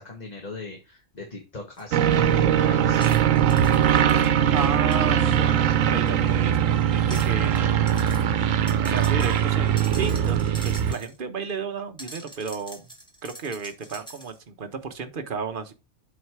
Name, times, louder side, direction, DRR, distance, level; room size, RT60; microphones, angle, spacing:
voice 1, 0.0-3.0, left 3 dB, 35° left, 1.5 m, -38 dB
sound 1, 1.8-1.9 2.9-4.3 4.9-5.0 7.0-7.6 7.9-8.2 8.7-11.2 12.0-14.4, equal, 5° left, 1.8 m, -44 dB
sound 2, 1.9-10.9, right 9 dB, 85° right, 1.1 m, -21 dB
voice 2, 4.5-7.7 8.8-12.9 13.2-15.7, right 5 dB, 45° right, 1.0 m, -33 dB
7.7 x 4.0 x 4.6 m
omnidirectional pair, 1.3 m